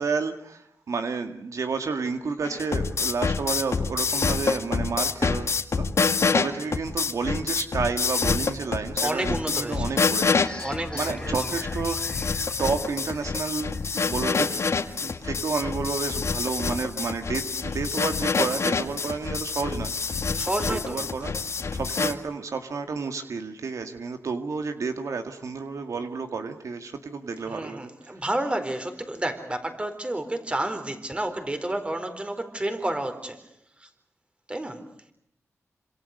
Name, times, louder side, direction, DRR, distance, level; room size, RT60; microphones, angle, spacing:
voice 1, 0.0-5.9 6.3-10.6 10.9-12.0 12.6-14.6 15.0-20.2 20.7-27.9, right 4 dB, 75° right, 7 dB, 2.0 m, -31 dB
sound 1, 2.4-22.1, left 4 dB, 60° left, 2.1 m, -27 dB
voice 2, 9.0-9.9 10.6-11.4 20.3-21.0 27.4-33.4 33.8-33.9 34.5-34.8, right 1 dB, 20° right, 8 dB, 4.2 m, -30 dB
sound 2, 10.3-15.7, left 2 dB, 15° left, 3.3 m, -41 dB
27.5 x 26.5 x 6.7 m, 0.74 s
wide cardioid pair, 95°, 5 cm